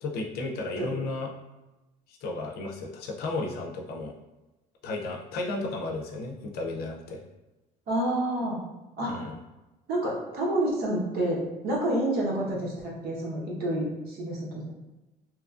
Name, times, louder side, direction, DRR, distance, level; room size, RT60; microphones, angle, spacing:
voice 1, 0.0-1.3 2.1-4.2 4.8-7.2 9.0-9.3, left 2 dB, 70° left, 0 dB, 0.5 m, -33 dB
voice 2, 7.9-8.6 9.0-9.3 9.9-14.7, right 1 dB, 65° right, -3 dB, 0.9 m, -29 dB
2.8 x 2.4 x 2.4 m, 1.0 s
cardioid pair, 110°, 17 cm